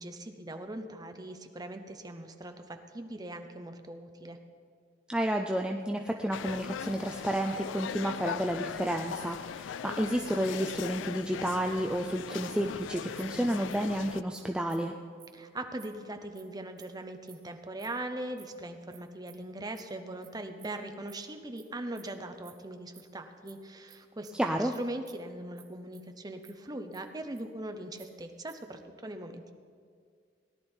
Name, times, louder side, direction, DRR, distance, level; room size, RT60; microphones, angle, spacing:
voice 1, 0.0-4.4 15.3-29.5, right 1 dB, 20° right, 7 dB, 0.8 m, -40 dB
voice 2, 5.1-14.9 24.3-24.8, right 1 dB, 5° right, 3 dB, 0.4 m, -31 dB
sound 1, 6.3-14.2, left 8 dB, 90° left, 0.3 m, -39 dB
sound 2, 12.6-12.7 13.2-13.4 13.7-13.9 14.3-14.4 14.7-14.8 15.2-15.3 15.8-15.9 16.3-16.4 16.8-16.9 17.3-17.4 17.8-17.9 18.4-18.5 18.9-19.0 19.3-19.4 19.7-19.8 20.2-20.3 20.6-20.8 21.1-21.6 21.9-22.0 22.4-22.5 22.8-23.0 23.4-23.5 23.9-24.0 24.2-24.4 24.7-24.8 25.1-25.3 25.6-25.7 25.9-26.5 26.9-27.7 28.0-28.8, right 11 dB, 60° right, 1.6 m, -55 dB
17.5 x 11.0 x 4.4 m, 2.1 s
head